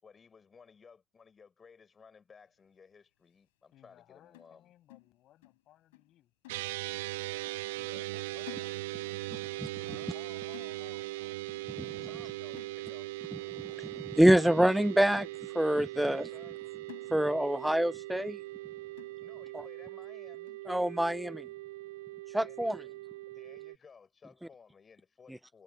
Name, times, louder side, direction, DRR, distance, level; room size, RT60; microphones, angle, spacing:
voice 1, 0.0-4.7 7.8-10.1 12.0-13.1 16.0-16.6 19.2-20.6 22.5-23.0 23.3-25.6, left 5 dB, 30° left, 6.5 m, -58 dB
voice 2, 3.7-6.3 7.4-8.8 10.1-11.4, left 13 dB, 55° left, 7.4 m, -60 dB
sound 1, 4.3-5.7 5.9-6.2 6.4-7.1 7.4-7.7 8.0-9.2 9.5-9.7 10.0-11.2 11.5-11.8 12.1-12.3 12.6-13.2 13.7-13.8 14.2-14.4 14.8-15.5 15.9-16.0 16.4-16.6 16.9-17.6 17.9-18.0 18.5-18.6 19.0-19.5 20.0-20.1 20.5-20.7, left 19 dB, 70° left, 5.5 m, -55 dB
sound 2, 6.5-23.8, right 19 dB, 70° right, 1.0 m, -40 dB
voice 3, 11.7-12.0 13.6-15.3 15.5-16.3 17.1-18.4 20.7-21.5 22.3-22.8, right 1 dB, 5° right, 0.3 m, -26 dB
figure-of-eight pair, 55°, 0 cm